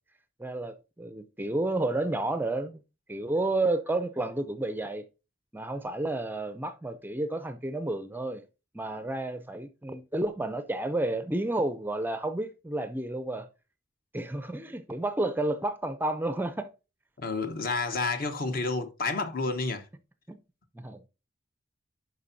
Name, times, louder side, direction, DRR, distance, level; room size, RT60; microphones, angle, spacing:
voice 1, 0.4-2.8 3.1-5.0 5.5-8.4 8.7-13.5 14.1-16.7 20.3-20.4 20.7-21.0, right 2 dB, 10° right, 0.5 m, -31 dB
voice 2, 17.2-19.9, left 3 dB, 50° left, 1.0 m, -30 dB
11.5 x 4.5 x 2.7 m
head